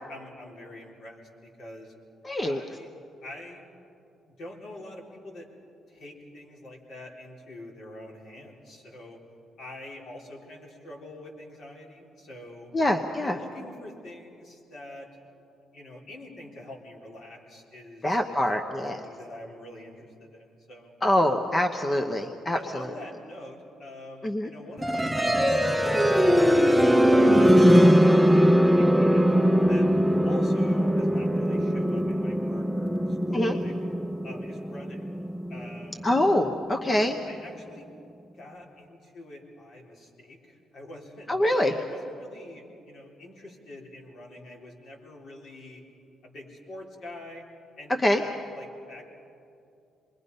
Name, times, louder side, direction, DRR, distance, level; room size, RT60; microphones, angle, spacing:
voice 1, 0.1-1.9 2.4-2.9 3.2-3.7 4.2-5.5 5.9-9.2 9.6-12.7 13.2-15.1 15.7-18.4 18.9-20.9 22.5-29.9 30.2-33.7 34.2-35.1 35.5-36.1 37.2-37.9 38.3-45.8 46.2-47.4 47.8-49.1, left 1 dB, 65° left, -2 dB, 4.1 m, -45 dB
voice 2, 2.2-2.6 12.7-13.4 18.0-19.0 21.0-22.9 24.2-24.5 33.3-33.5 36.0-37.2 41.3-41.7 48.0-48.2, left 1 dB, 25° left, 5 dB, 1.0 m, -24 dB
sound 1, 24.8-36.7, equal, ahead, 0.7 m, -21 dB
27.0 x 21.5 x 5.5 m, 2.7 s
cardioid pair, 90°, 0 cm